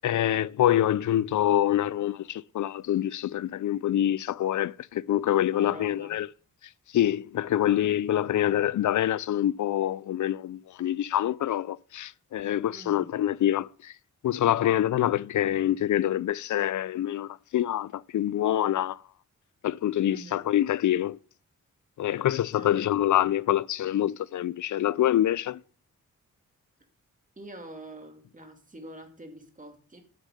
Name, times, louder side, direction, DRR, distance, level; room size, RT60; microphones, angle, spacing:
voice 1, 0.0-6.3 6.9-13.9 14.2-19.0 19.6-21.2 22.0-25.6, left 12 dB, 65° left, 0.5 m, -26 dB
voice 2, 5.5-6.1 12.7-13.1 20.1-20.5 22.5-22.8 27.4-30.0, right 1 dB, 25° right, 2.5 m, -45 dB
9.9 x 6.5 x 6.4 m
cardioid pair, 75°, 32 cm